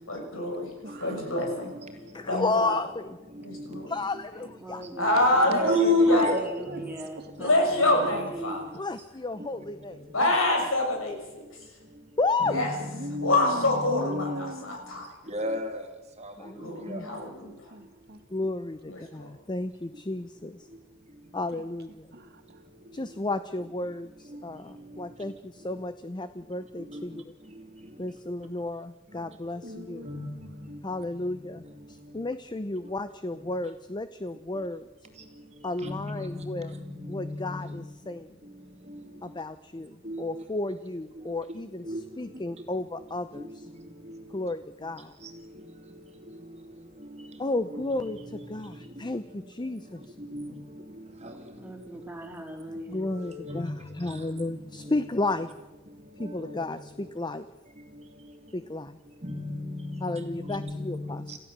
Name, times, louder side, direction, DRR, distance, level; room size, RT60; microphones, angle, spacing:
voice 1, 0.1-0.7 1.0-1.7 2.3-2.8 3.4-3.9 5.0-6.2 7.4-8.6 10.1-11.4 12.5-12.7 13.2-15.1 16.6-17.7 18.8-19.3, left 1 dB, 80° left, 2 dB, 6.4 m, -26 dB
voice 2, 0.8-1.4 5.5-5.8 6.7-6.8 7.2-7.3 7.9-8.3 12.5-14.8 16.6-18.2 22.1-22.6 29.6-30.8, equal, 55° right, 5 dB, 2.5 m, -39 dB
voice 3, 2.1-3.2 3.9-4.8 8.7-10.1 12.2-12.5 16.4-17.1 18.3-20.6 21.3-22.1 22.9-27.2 28.0-30.1 30.8-31.6 31.9-34.9 35.6-36.7 37.1-38.3 39.2-41.8 42.2-43.7 44.3-45.1 47.4-50.1 52.9-55.5 56.2-57.5 58.5-59.0 60.0-61.2, left 2 dB, 20° left, 11 dB, 0.7 m, -33 dB
voice 4, 4.3-8.8 51.6-53.1, right 1 dB, 10° right, 2 dB, 3.6 m, -39 dB
voice 5, 5.5-6.9 12.4-13.3 13.6-14.4 15.3-15.8 16.2-16.3 16.8-17.0 26.9-27.0 29.6-30.5 35.8-37.8 40.0-40.2 41.8-42.0 43.8-43.9 47.7-47.8 50.3-50.5 51.2-51.3 53.0-54.1 54.8-55.0 56.2-56.6 59.2-61.4, equal, 35° right, 4 dB, 2.8 m, -33 dB
28.0 x 15.5 x 7.4 m, 1.1 s
head